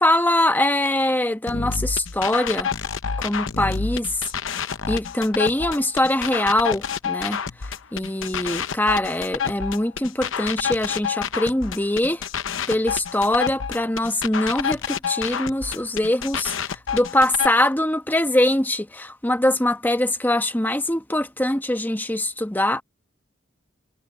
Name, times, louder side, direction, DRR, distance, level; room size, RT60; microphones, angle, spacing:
voice 1, 0.0-2.7 3.2-4.1 4.9-7.4 7.9-12.2 12.7-22.8, left 1 dB, 10° left, 1.1 m, -22 dB
sound 1, 1.5-17.5, left 6 dB, 70° left, 0.8 m, -28 dB
head